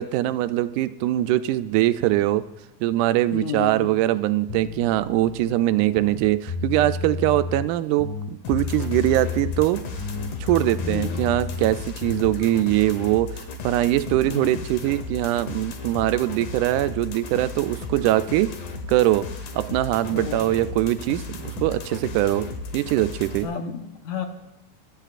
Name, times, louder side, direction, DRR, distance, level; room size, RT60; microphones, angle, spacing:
voice 1, 0.0-2.4 2.8-9.8 10.4-18.5 18.9-19.3 19.6-22.5 22.7-23.5, right 15 dB, 85° right, 12 dB, 2.0 m, -22 dB
voice 2, 3.3-3.9 10.8-11.2 14.2-14.6 20.1-20.5 23.4-24.3, left 6 dB, 70° left, 4 dB, 2.3 m, -31 dB
sound 1, 4.5-5.5 5.9-7.7 8.0-9.7 10.0-12.4, left 5 dB, 20° left, 0.7 m, -31 dB
sound 2, 8.4-23.4, left 3 dB, 85° left, 2.7 m, -35 dB
23.0 x 11.5 x 2.5 m, 0.91 s
omnidirectional pair, 3.5 m